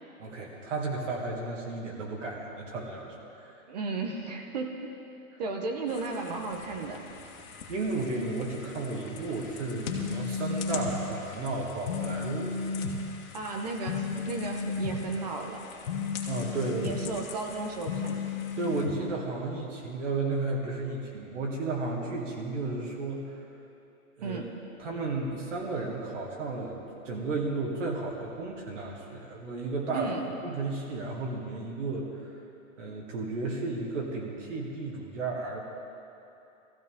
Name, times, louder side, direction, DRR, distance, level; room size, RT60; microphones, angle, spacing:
voice 1, 0.2-3.5 5.3-5.4 7.7-12.6 16.3-17.0 18.6-23.4 24.2-24.4 24.8-26.8 27.0-30.1 30.4-32.4 32.8-35.6, right 3 dB, 55° right, -2 dB, 2.1 m, -33 dB
voice 2, 3.7-4.9 5.4-7.0 13.3-15.6 16.8-18.3 24.2-24.5 29.9-30.3, right 3 dB, 30° right, 3 dB, 0.8 m, -34 dB
sound 1, 5.9-18.9, left 6 dB, 65° left, 2.0 m, -46 dB
sound 2, 9.9-11.0 11.9-13.0 13.9-15.0 15.9-17.0 17.9-19.0, left 5 dB, 40° left, 1.3 m, -33 dB
19.0 x 15.0 x 3.6 m, 2.9 s
hypercardioid pair, 165°, 44 cm